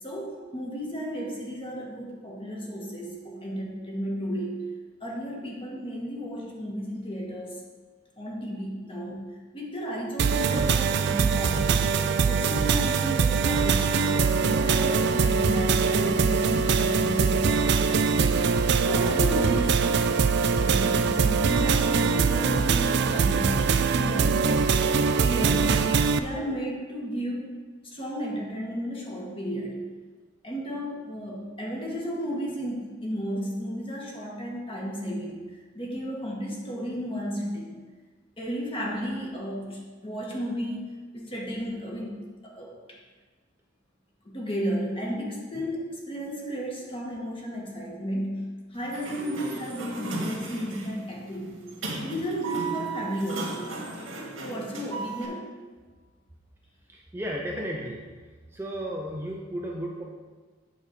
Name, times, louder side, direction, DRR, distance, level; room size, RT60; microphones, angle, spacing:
voice 1, 0.0-4.7 5.0-7.6 8.2-9.2 9.5-11.9 12.2-14.0 14.3-17.8 18.8-20.1 20.5-24.6 24.9-25.9 26.2-27.5 27.8-29.8 30.4-37.7 38.4-42.1 42.4-43.0 44.2-51.6 52.0-53.7 54.4-55.5, equal, 30° left, -2 dB, 1.6 m, -33 dB
sound 1, 10.2-26.2, right 5 dB, 60° right, 0.4 m, -23 dB
Sliding door, 48.7-55.3, right 3 dB, 90° right, 1.9 m, -36 dB
voice 2, 56.9-58.0 58.5-60.0, equal, 10° right, -2 dB, 0.6 m, -34 dB
8.5 x 4.1 x 6.6 m, 1.4 s
head